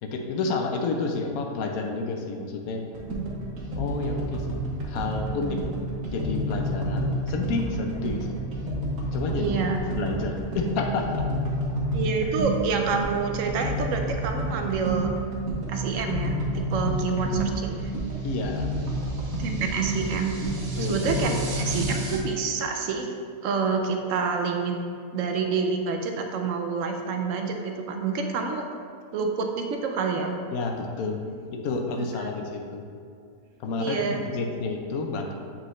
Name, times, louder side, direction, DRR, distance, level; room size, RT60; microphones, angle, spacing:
voice 1, 0.0-2.8 3.8-4.6 4.9-5.6 6.0-8.4 9.1-9.5 10.0-11.3 18.2-18.7 20.8-21.0 30.5-31.2 31.5-32.8 33.6-35.3, left 3 dB, 80° left, 3 dB, 1.1 m, -30 dB
sound 1, 2.9-22.2, right 1 dB, 85° right, 1.4 m, -29 dB
voice 2, 9.3-9.8 11.9-15.1 15.7-17.9 19.4-20.3 20.9-23.1 23.4-24.8 25.1-28.7 29.1-30.4 32.2-32.4 33.8-34.2, right 5 dB, 70° right, 4 dB, 1.0 m, -28 dB
7.7 x 4.2 x 3.1 m, 2.2 s
omnidirectional pair, 1.5 m